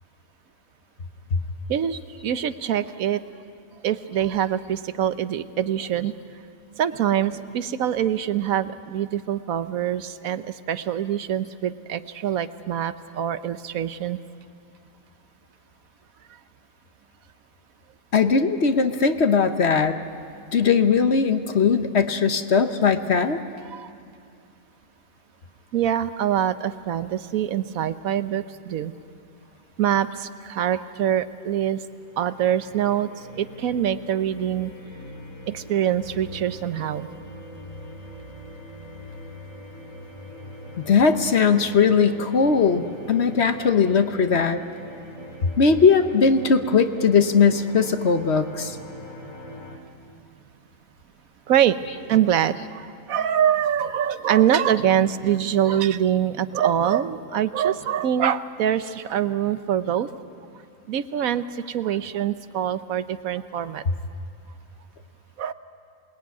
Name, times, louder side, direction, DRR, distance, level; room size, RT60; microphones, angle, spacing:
voice 1, 1.7-3.2 3.8-6.1 6.8-14.2 23.7-23.9 25.7-28.9 29.8-31.8 32.2-34.7 35.5-37.1 51.5-51.8 52.1-60.1 60.9-63.8 65.4-65.5, right 10 dB, 80° right, 13 dB, 1.3 m, -24 dB
voice 2, 18.1-20.0 20.5-23.4 40.8-44.6 45.6-48.8, left 5 dB, 55° left, 8 dB, 1.2 m, -19 dB
sound 1, 31.9-49.8, left 1 dB, 70° left, 2.9 m, -42 dB
27.0 x 20.5 x 9.5 m, 2.4 s
omnidirectional pair, 1.4 m